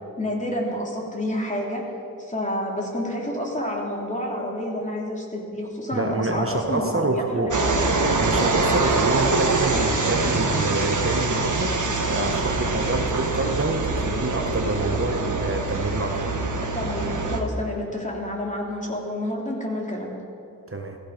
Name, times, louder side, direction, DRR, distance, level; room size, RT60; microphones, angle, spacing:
voice 1, 0.2-1.8 2.2-7.9 16.6-20.1, left 1 dB, 20° left, -2 dB, 3.3 m, -29 dB
voice 2, 5.9-7.5 8.2-11.8 12.0-16.3 20.7-21.0, right 3 dB, 40° right, 3 dB, 1.2 m, -27 dB
sound 1, 7.5-17.4, right 3 dB, 55° right, 1.6 m, -24 dB
16.0 x 15.5 x 5.2 m, 2.6 s
wide cardioid pair, 60°, 35 cm